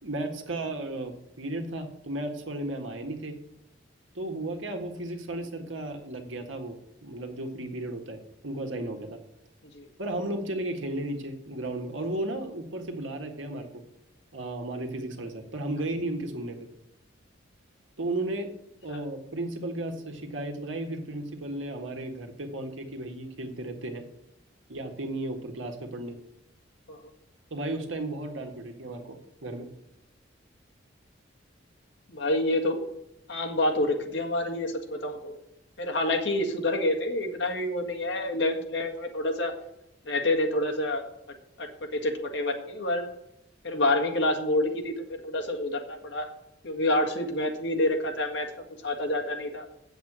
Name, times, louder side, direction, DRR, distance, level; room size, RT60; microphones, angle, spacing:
voice 1, 0.0-3.3 4.1-6.8 7.0-8.2 8.4-9.2 10.0-13.8 14.3-16.7 18.0-18.5 18.8-24.0 24.7-26.2 27.5-29.7, right 1 dB, 85° right, 3 dB, 1.7 m, -34 dB
voice 2, 32.1-32.8 33.3-35.4 35.8-39.5 40.1-41.1 41.6-43.1 43.6-46.3 46.6-48.5 48.8-49.7, left 1 dB, 65° left, 3 dB, 1.8 m, -28 dB
8.5 x 7.9 x 6.2 m, 0.85 s
head